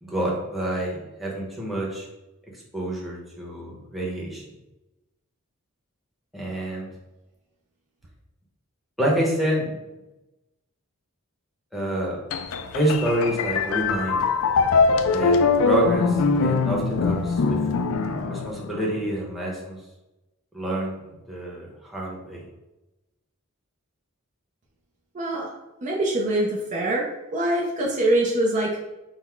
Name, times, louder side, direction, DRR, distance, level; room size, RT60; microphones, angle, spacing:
voice 1, 0.0-2.1 2.7-4.4 6.3-6.9 9.0-9.7 11.7-12.2 12.7-14.2 15.1-15.4 15.6-17.6 18.3-19.8 20.5-22.4, right 1 dB, ahead, -4 dB, 0.8 m, -27 dB
sound 1, 12.3-19.0, left 4 dB, 70° left, 0.3 m, -22 dB
voice 2, 25.1-25.5 25.8-27.0 27.3-28.8, right 1 dB, 35° right, -3 dB, 0.5 m, -24 dB
3.9 x 2.1 x 4.4 m, 1.0 s
head